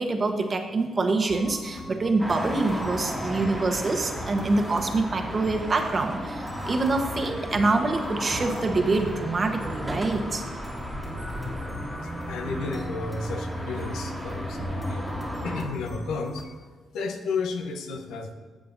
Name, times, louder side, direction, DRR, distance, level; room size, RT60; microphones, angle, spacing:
voice 1, 0.0-10.4, right 3 dB, 40° right, 5 dB, 1.0 m, -25 dB
sound 1, 1.3-16.4, left 1 dB, 20° left, 2.2 m, -40 dB
sound 2, 2.2-15.7, equal, 5° right, 1.7 m, -34 dB
voice 2, 11.9-15.1 15.4-16.5 16.9-18.3, left 4 dB, 85° left, 6 dB, 0.8 m, -33 dB
11.5 x 7.4 x 2.6 m, 1.4 s
cardioid pair, 70°, 0 cm